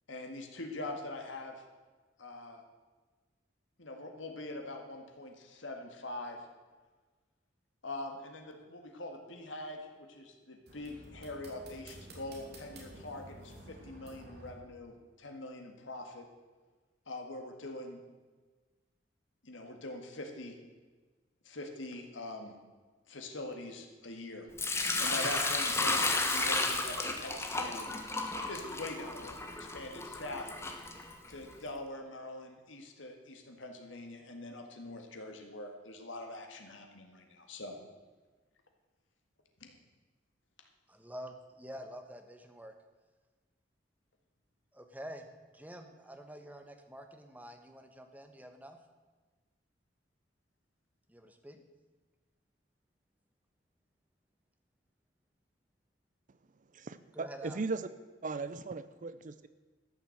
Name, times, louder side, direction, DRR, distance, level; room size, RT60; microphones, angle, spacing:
voice 1, 0.1-1.6 2.2-2.6 3.8-6.4 7.8-16.3 17.1-18.0 19.4-20.6 21.4-22.6 23.1-24.5 25.0-27.9 28.5-30.5 31.3-37.8 39.6-39.8, left 2 dB, 80° left, 4 dB, 1.9 m, -43 dB
sound 1, 10.7-14.5, right 1 dB, 60° right, 2.9 m, -51 dB
Sink (filling or washing) / Liquid, 24.6-31.5, left 2 dB, 15° left, 1.2 m, -33 dB
voice 2, 40.9-42.7 44.7-45.3 45.5-48.8 51.1-51.6 57.1-57.6, equal, 10° right, 6 dB, 1.1 m, -47 dB
voice 3, 56.7-57.9 58.2-59.5, right 3 dB, 45° right, 13 dB, 0.5 m, -38 dB
13.0 x 6.9 x 7.8 m, 1.3 s
head